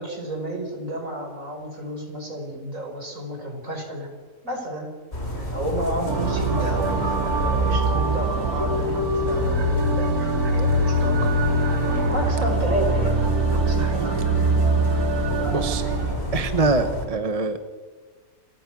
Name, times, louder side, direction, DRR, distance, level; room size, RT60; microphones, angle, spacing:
voice 1, 0.0-4.1 4.4-4.9 5.5-11.4 12.1-13.2 13.5-14.0, right 1 dB, 60° right, 2 dB, 6.3 m, -31 dB
sound 1, 5.1-17.0, left 1 dB, 45° left, 4.9 m, -30 dB
sound 2, 6.1-16.1, right 1 dB, 85° right, 3.3 m, -23 dB
voice 2, 13.8-14.2 15.5-15.8 16.3-17.6, right 3 dB, 25° right, 9 dB, 1.2 m, -24 dB
29.0 x 24.0 x 6.3 m, 1.4 s
omnidirectional pair, 1.6 m